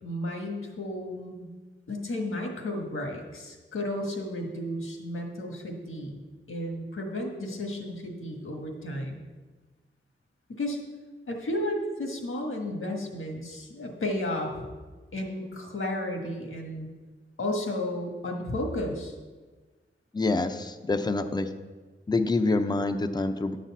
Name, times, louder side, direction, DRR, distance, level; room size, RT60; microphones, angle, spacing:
voice 1, 0.0-1.5 1.9-6.2 6.5-9.2 10.5-10.8 11.3-14.6 15.1-16.9 17.4-19.1, left 1 dB, 80° left, 2 dB, 1.4 m, -33 dB
voice 2, 20.1-21.5 22.1-23.6, left 3 dB, 20° left, 8 dB, 0.5 m, -26 dB
10.5 x 4.1 x 7.3 m, 1.3 s
wide cardioid pair, 85°, 21 cm